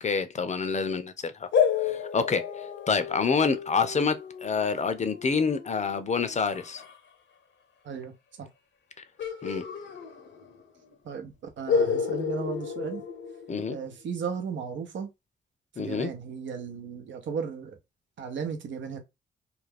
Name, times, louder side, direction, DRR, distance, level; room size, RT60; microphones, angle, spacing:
voice 1, 0.0-1.5 1.8-6.8 9.4-9.6 13.5-13.8 15.8-16.1, left 5 dB, 35° left, 0.5 m, -27 dB
sound 1, 1.5-7.0 9.2-10.7 10.9-11.0 11.7-13.9, left 6 dB, 70° left, 0.8 m, -31 dB
voice 2, 7.8-8.5 11.0-13.0 13.7-15.1 15.8-17.8 18.2-19.0, right 6 dB, 75° right, 0.7 m, -35 dB
2.4 x 2.2 x 3.3 m
cardioid pair, 55°, 20 cm